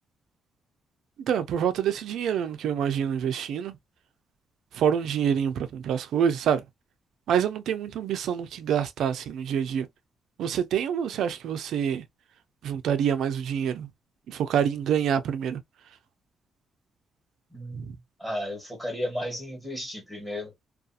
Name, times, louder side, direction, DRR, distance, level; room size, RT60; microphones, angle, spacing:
voice 1, 1.2-3.8 4.7-6.6 7.3-9.9 10.4-12.0 12.6-13.9 14.3-15.6 17.7-18.0, right 8 dB, 80° right, 0.4 m, -26 dB
voice 2, 17.5-20.5, equal, 10° left, 1.2 m, -34 dB
2.4 x 2.3 x 2.6 m
cardioid pair, 165°, 0 cm